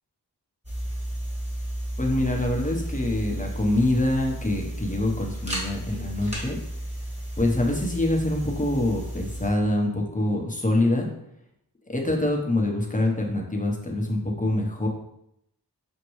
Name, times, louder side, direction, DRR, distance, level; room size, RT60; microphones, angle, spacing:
sound 1, 0.6-9.5, right 1 dB, 15° right, 1.5 m, -33 dB
voice 1, 2.0-6.6 7.4-11.1 11.9-14.9, left 1 dB, 20° left, 0 dB, 0.8 m, -25 dB
6.2 x 2.2 x 3.1 m, 0.77 s
wide cardioid pair, 50°, 41 cm